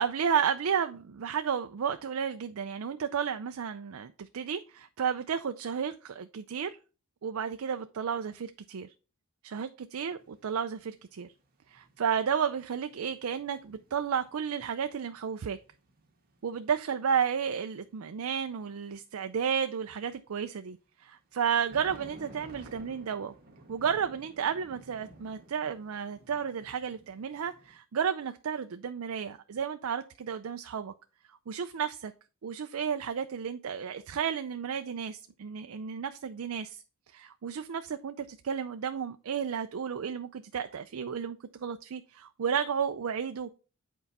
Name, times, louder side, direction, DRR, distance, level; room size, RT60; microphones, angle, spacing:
voice 1, 0.0-6.8 7.2-8.9 9.4-11.3 11.7-15.6 16.4-23.3 23.7-30.9 31.5-32.1 32.4-43.5, right 7 dB, 70° right, 9 dB, 0.4 m, -32 dB
sound 1, 10.0-10.4 10.7-16.7 17.3-18.7 21.3-27.7, right 2 dB, 45° right, 1.5 m, -54 dB
8.0 x 4.6 x 4.1 m, 0.34 s
head